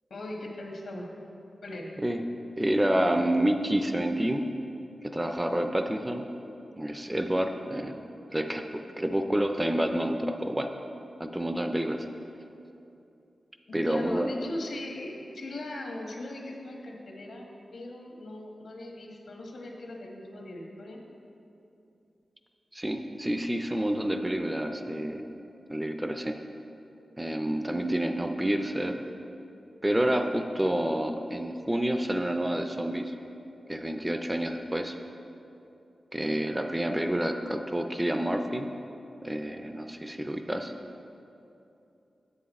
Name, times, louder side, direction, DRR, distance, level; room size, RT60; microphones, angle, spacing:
voice 1, 0.1-1.1 1.6-2.0 13.7-21.0, left 1 dB, 70° left, 0 dB, 1.2 m, -39 dB
voice 2, 2.6-4.4 5.0-6.2 6.8-8.1 8.3-8.6 9.0-10.7 11.2-12.0 13.7-14.3 22.7-25.4 25.7-26.3 27.2-29.0 29.8-33.1 33.7-35.0 36.1-38.7 39.2-40.7, right 1 dB, 10° right, 6 dB, 0.4 m, -28 dB
7.9 x 7.7 x 4.1 m, 2.7 s
wide cardioid pair, 145°, 0 cm